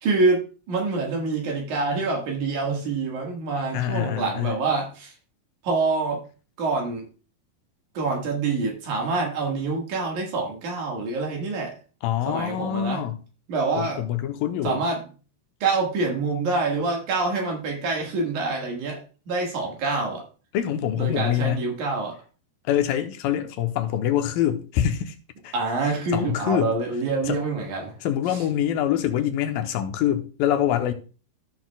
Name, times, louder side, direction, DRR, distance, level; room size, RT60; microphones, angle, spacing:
voice 1, 0.0-5.1 5.6-6.2 6.6-7.1 7.9-11.8 12.3-13.0 13.5-14.0 14.6-15.0 15.6-20.2 20.9-22.2 25.5-27.9, right 3 dB, 60° right, 2.9 m, -26 dB
voice 2, 3.7-4.6 12.0-13.2 13.8-14.8 20.5-21.7 22.6-25.2 25.4-25.5 25.8-26.8 27.2-27.4 28.0-30.9, left 10 dB, 85° left, 2.5 m, -25 dB
15.0 x 6.1 x 2.3 m
omnidirectional pair, 4.1 m